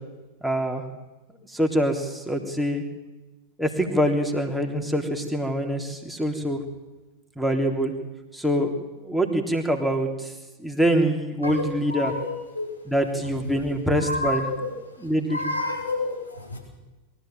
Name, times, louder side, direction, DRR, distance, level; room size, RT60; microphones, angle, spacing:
voice 1, 0.4-0.8 1.5-2.8 3.6-6.6 7.3-7.9 8.3-10.3 10.6-12.1 12.8-14.5 15.0-15.4, equal, ahead, 4 dB, 3.5 m, -25 dB
voice 2, 11.9-12.3 12.6-12.7 14.0-14.7 15.3-16.6, left 2 dB, 85° left, -1 dB, 7.9 m, -29 dB
23.0 x 14.5 x 9.2 m, 1.1 s
figure-of-eight pair, 90°, 0 cm